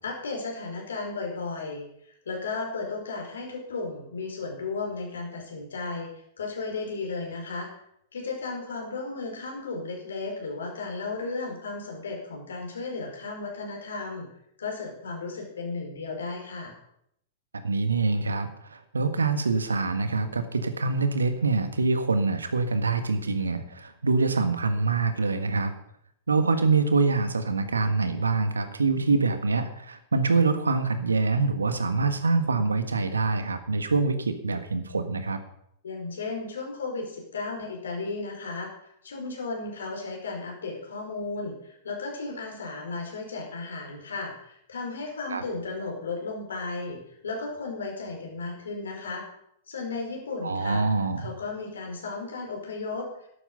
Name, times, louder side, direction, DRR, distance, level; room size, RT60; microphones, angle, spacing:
voice 1, 0.0-1.9 2.2-6.1 6.4-7.7 8.1-14.3 14.6-16.7 35.8-38.7 39.0-49.2 49.7-50.9 51.2-53.3, left 3 dB, 75° left, 1 dB, 5.1 m, -34 dB
voice 2, 17.5-25.7 26.3-35.4 45.3-45.4 50.4-51.3, right 3 dB, 80° right, 9 dB, 1.6 m, -25 dB
12.5 x 12.0 x 5.6 m, 0.74 s
figure-of-eight pair, 100°, 0 cm